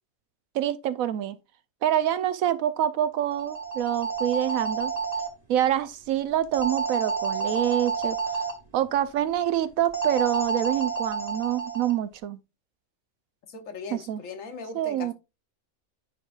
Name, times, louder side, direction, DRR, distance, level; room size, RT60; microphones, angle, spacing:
voice 1, 0.5-1.4 1.8-4.9 5.5-8.2 8.7-12.4 13.9-14.2 14.7-15.1, right 11 dB, 75° right, 1.0 m, -26 dB
sound 1, 3.3-5.3 6.5-8.5 9.9-11.9, right 5 dB, 30° right, 1.4 m, -29 dB
voice 2, 13.5-15.1, left 4 dB, 65° left, 1.4 m, -39 dB
9.9 x 5.3 x 2.4 m
omnidirectional pair, 1.5 m